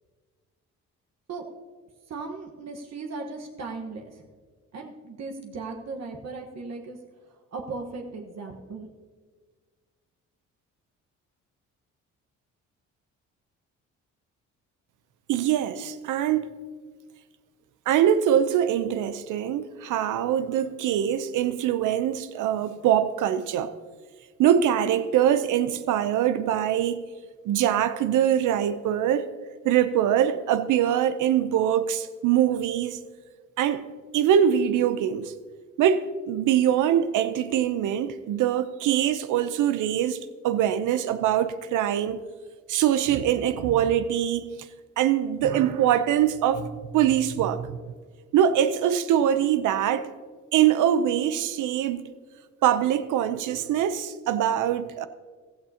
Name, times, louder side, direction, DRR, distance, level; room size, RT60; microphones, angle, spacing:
voice 1, 2.1-4.2 4.7-7.0 7.2-8.9, right 3 dB, 60° right, 1.4 m, -37 dB
voice 2, 15.3-16.5 17.9-23.7 24.4-27.0 27.5-29.3 29.6-33.0 33.6-33.9 34.1-35.3 35.8-40.2 40.4-42.2 42.7-44.5 45.0-46.7 46.9-47.7 48.3-50.1 50.5-52.0 52.6-55.1, right 10 dB, 85° right, 0.7 m, -23 dB
15.0 x 13.5 x 2.9 m
cardioid pair, 90°, 30 cm